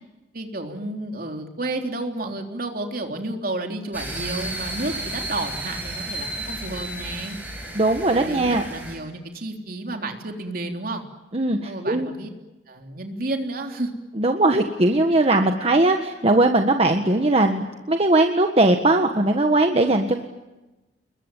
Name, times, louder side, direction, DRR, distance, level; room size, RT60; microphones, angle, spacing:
voice 1, 0.3-7.4 8.1-11.0 11.6-12.3 12.7-13.9, right 2 dB, 55° right, 3 dB, 3.7 m, -31 dB
sound 1, 3.9-9.0, right 1 dB, 10° right, 7.8 m, -33 dB
voice 2, 7.7-8.6 11.3-12.1 14.2-20.2, right 2 dB, 35° right, 5 dB, 1.6 m, -19 dB
29.0 x 22.0 x 9.2 m, 1.0 s
head